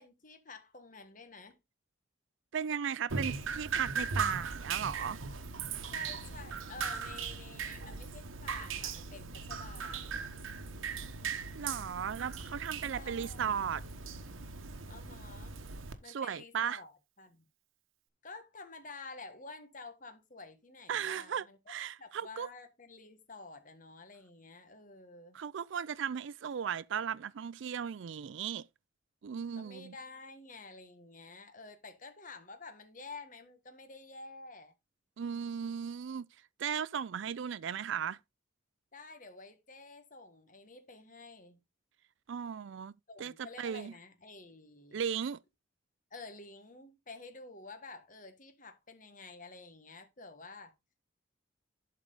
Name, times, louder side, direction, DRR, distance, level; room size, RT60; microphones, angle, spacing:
voice 1, 0.0-1.6 5.9-10.2 12.9-13.6 14.9-15.6 16.0-17.5 18.2-21.6 22.0-25.4 29.5-34.7 37.7-37.8 38.9-41.6 43.1-45.0 46.1-50.7, left 3 dB, 40° left, 1.5 m, -50 dB
voice 2, 2.5-5.2 11.5-13.8 16.1-16.8 20.9-22.5 25.3-28.7 29.2-29.9 35.2-36.3 36.6-38.2 42.3-42.9 43.2-43.9 44.9-45.4, right 7 dB, 70° right, 0.4 m, -36 dB
Drip, 3.1-15.9, right 5 dB, 85° right, 1.1 m, -39 dB
11.5 x 4.7 x 3.9 m
head